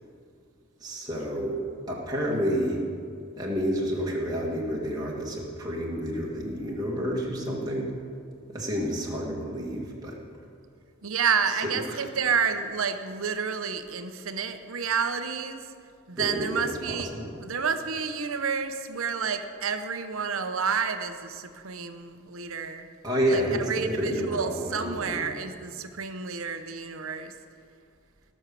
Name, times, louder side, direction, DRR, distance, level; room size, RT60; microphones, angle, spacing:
voice 1, 0.8-2.8 3.4-7.9 8.5-10.2 11.9-12.0 16.2-17.3 23.0-25.2, equal, 20° right, -4 dB, 1.8 m, -29 dB
voice 2, 11.0-15.7 16.1-17.1 17.4-22.9 23.3-27.3, right 6 dB, 70° right, 8 dB, 0.9 m, -30 dB
18.0 x 6.4 x 6.9 m, 2.2 s
head